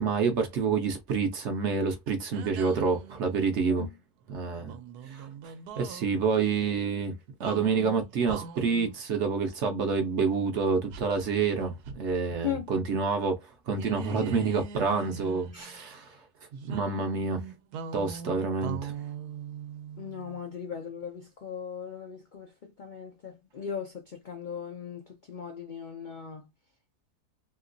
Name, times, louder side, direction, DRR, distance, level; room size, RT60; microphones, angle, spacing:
voice 1, 0.0-3.9 4.3-4.7 5.1-5.3 5.8-7.1 7.4-13.4 13.7-16.2 16.5-17.4 17.9-18.9, right 5 dB, 60° right, 0.8 m, -28 dB
sound 1, 2.3-3.6 4.6-6.1 7.4-9.0 10.9-12.4 12.6-12.8 13.7-15.8 16.6-20.4, right 7 dB, 85° right, 1.1 m, -42 dB
voice 2, 12.3-12.7 15.5-15.7 20.0-26.4, left 8 dB, 85° left, 0.4 m, -38 dB
2.9 x 2.8 x 2.5 m
omnidirectional pair, 1.6 m